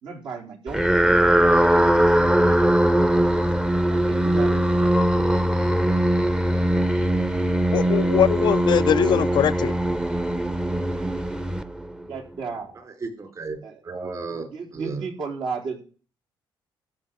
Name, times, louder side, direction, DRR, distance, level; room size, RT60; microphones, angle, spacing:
voice 1, 0.0-2.0 3.9-4.9 12.0-12.8 13.6-13.8 14.5-15.8, right 5 dB, 70° right, 4.0 m, -35 dB
sound 1, 0.7-12.1, right 1 dB, 10° right, 0.8 m, -21 dB
voice 2, 7.7-9.7, left 10 dB, 60° left, 0.6 m, -21 dB
voice 3, 13.0-13.6 13.8-14.5 14.7-15.1, right 4 dB, 40° right, 4.5 m, -33 dB
13.5 x 5.6 x 9.0 m
cardioid pair, 100°, 9 cm